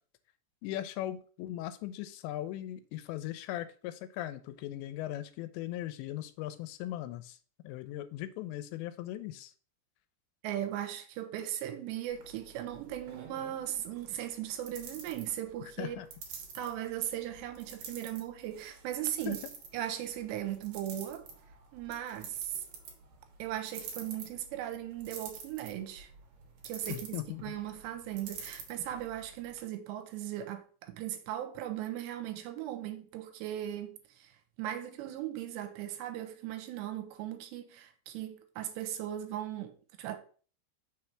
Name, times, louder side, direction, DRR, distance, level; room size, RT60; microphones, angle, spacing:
voice 1, 0.6-7.4 7.6-9.5 15.8-16.1 19.3-19.4 26.9-27.5, left 13 dB, 85° left, 2.8 m, -39 dB
voice 2, 10.4-16.0 16.5-19.4 19.7-21.3 21.7-22.6 23.4-26.1 26.6-34.3 34.6-40.2, right 12 dB, 85° right, 2.9 m, -38 dB
sound 1, 12.1-29.6, right 5 dB, 65° right, 2.4 m, -49 dB
6.2 x 3.2 x 5.7 m
omnidirectional pair, 5.1 m